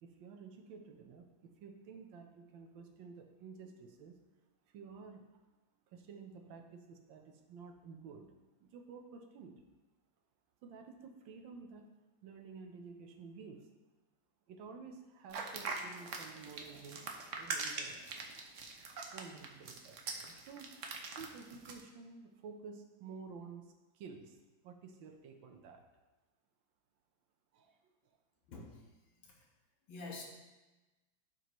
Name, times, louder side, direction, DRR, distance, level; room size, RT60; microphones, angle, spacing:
voice 1, 0.0-4.1 4.7-5.3 5.9-8.3 8.6-9.6 10.6-11.9 12.2-13.7 14.5-17.0 17.4-18.2 19.1-20.7 21.0-24.4 24.6-25.8 27.5-27.8, right 5 dB, 75° right, 3 dB, 1.5 m, -52 dB
sound 1, 15.3-21.8, right 4 dB, 60° right, 0.8 m, -42 dB
voice 2, 28.5-29.5 29.9-30.2, left 3 dB, 85° left, -1 dB, 2.1 m, -49 dB
11.5 x 4.6 x 3.1 m, 1.1 s
omnidirectional pair, 2.1 m